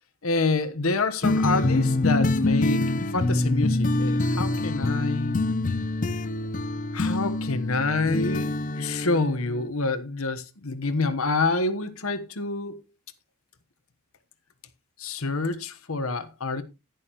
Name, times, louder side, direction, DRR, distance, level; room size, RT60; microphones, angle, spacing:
voice 1, 0.2-5.4 6.9-12.8 15.0-16.6, left 3 dB, 70° left, 1.2 m, -27 dB
sound 1, 1.2-9.7, left 2 dB, 35° left, 0.6 m, -25 dB
11.0 x 11.0 x 3.0 m
head